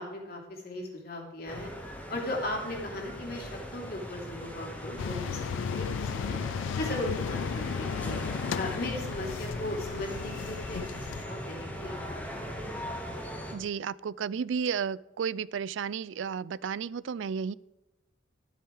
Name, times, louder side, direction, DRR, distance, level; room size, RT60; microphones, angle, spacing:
voice 1, 0.0-1.7 2.1-6.4 6.8-8.2 8.5-12.6, left 1 dB, 50° left, 0 dB, 2.9 m, -37 dB
sound 1, 1.5-13.5, equal, 10° left, 1.8 m, -39 dB
sound 2, 5.0-11.2, left 7 dB, 80° left, 0.3 m, -34 dB
voice 2, 13.5-17.5, right 6 dB, 80° right, 21 dB, 0.4 m, -33 dB
12.5 x 8.1 x 4.8 m, 1.0 s
head